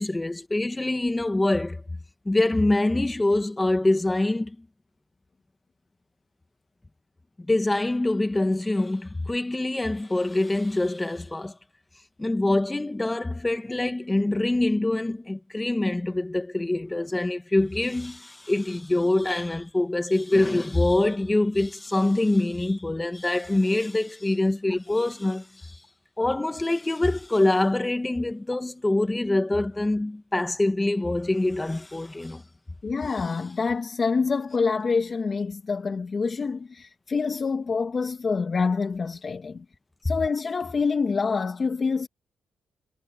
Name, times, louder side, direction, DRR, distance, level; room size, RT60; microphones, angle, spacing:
voice 1, 0.0-1.8 2.2-4.6 7.5-11.6 12.2-25.8 26.2-32.4 33.2-33.3, left 2 dB, 15° left, 1.5 m, -25 dB
voice 2, 32.8-39.6 40.0-42.1, left 4 dB, 35° left, 2.1 m, -26 dB
cardioid pair, 110°, 0 cm